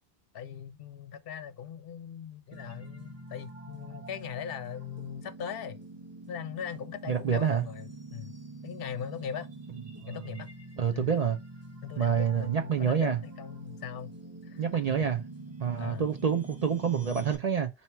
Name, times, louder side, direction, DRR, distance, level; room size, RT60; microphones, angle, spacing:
voice 1, 0.3-5.8 6.3-8.3 8.6-9.5 10.1-10.5 10.9-11.1 11.8-14.2 14.4-14.8 15.8-16.1, left 8 dB, 70° left, 0.7 m, -40 dB
sound 1, 2.5-17.4, right 2 dB, 15° right, 1.1 m, -46 dB
voice 2, 7.1-7.6 10.0-10.4 10.8-11.4 12.0-13.2 14.6-15.2 15.6-17.7, right 7 dB, 50° right, 0.5 m, -27 dB
4.3 x 2.8 x 4.3 m
omnidirectional pair, 1.1 m